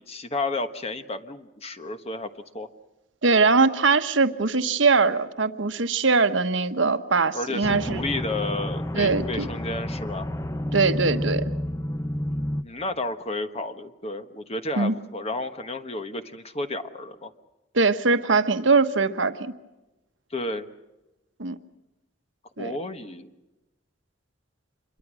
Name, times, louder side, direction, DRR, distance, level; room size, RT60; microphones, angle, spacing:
voice 1, 0.0-2.7 7.3-10.3 12.6-17.3 20.3-20.7 22.6-23.3, left 2 dB, 30° left, 8 dB, 1.3 m, -32 dB
voice 2, 3.2-8.0 8.9-9.5 10.7-11.5 14.8-14.9 17.7-19.3 21.4-21.6 22.6-22.7, right 4 dB, 70° right, 9 dB, 1.2 m, -21 dB
sound 1, 7.6-12.6, left 1 dB, 15° left, 0.8 m, -30 dB
27.0 x 23.0 x 6.3 m, 1.0 s
head